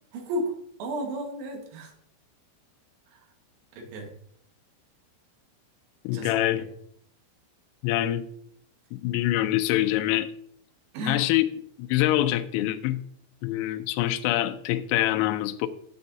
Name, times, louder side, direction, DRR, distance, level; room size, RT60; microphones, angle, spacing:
voice 1, 0.1-0.5 0.8-1.9 3.1-3.2 3.8-4.1 6.1-6.6 10.9-11.3, right 1 dB, 80° right, 1 dB, 4.3 m, -33 dB
voice 2, 6.0-6.7 7.8-8.3 8.9-10.3 11.0-13.0 13.4-15.7, left 14 dB, 85° left, 8 dB, 3.0 m, -25 dB
13.0 x 7.2 x 2.7 m, 0.67 s
omnidirectional pair, 6.0 m